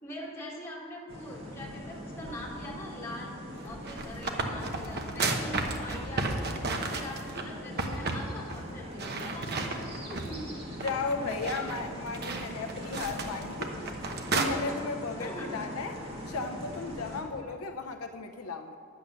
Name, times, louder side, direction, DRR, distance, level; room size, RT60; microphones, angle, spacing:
voice 1, 0.0-10.5 15.2-15.6, left 1 dB, 15° left, -7 dB, 3.1 m, -42 dB
sound 1, 1.1-17.2, equal, 25° right, 2.1 m, -42 dB
sound 2, 3.6-7.4 7.8-8.2 8.5-8.6 9.0-10.4 10.8-14.5, right 3 dB, 50° right, 1.1 m, -33 dB
voice 2, 10.8-13.7 14.0-16.0 16.3-18.8, left 3 dB, 80° left, 5 dB, 0.7 m, -35 dB
10.5 x 8.6 x 6.8 m, 2.5 s
head